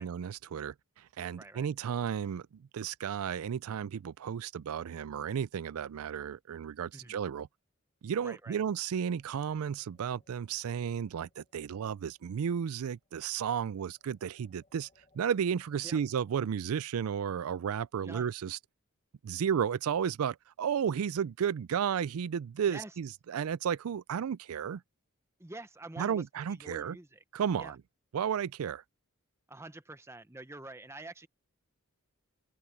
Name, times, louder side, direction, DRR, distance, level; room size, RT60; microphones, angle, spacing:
voice 1, 0.0-7.5 8.0-14.9 15.1-18.6 19.2-24.8 26.0-27.0 27.3-27.8 28.1-28.8, right 8 dB, 75° right, 0.4 m, -33 dB
sound 1, 8.0-16.9, left 2 dB, 30° left, 4.5 m, -72 dB
voice 2, 8.2-8.6 15.8-16.0 18.0-18.3 22.7-22.9 25.4-26.2 26.5-27.2 27.6-27.7 29.5-31.3, right 2 dB, 10° right, 0.8 m, -46 dB
head